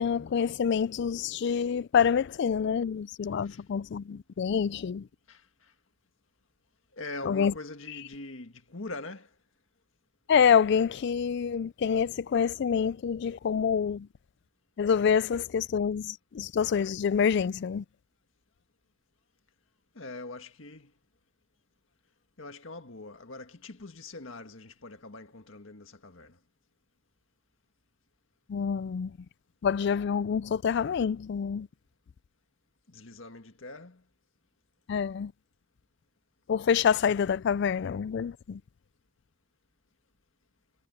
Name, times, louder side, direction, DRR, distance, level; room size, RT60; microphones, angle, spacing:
voice 1, 0.0-5.1 7.3-7.5 7.9-8.0 10.3-14.1 14.8-17.8 28.5-29.2 29.6-31.7 34.9-35.3 36.5-38.6, left 7 dB, 60° left, 0.4 m, -27 dB
voice 2, 5.3-5.7 6.9-9.3 20.0-20.9 22.4-26.4 32.9-34.0, left 2 dB, 75° left, 1.8 m, -43 dB
head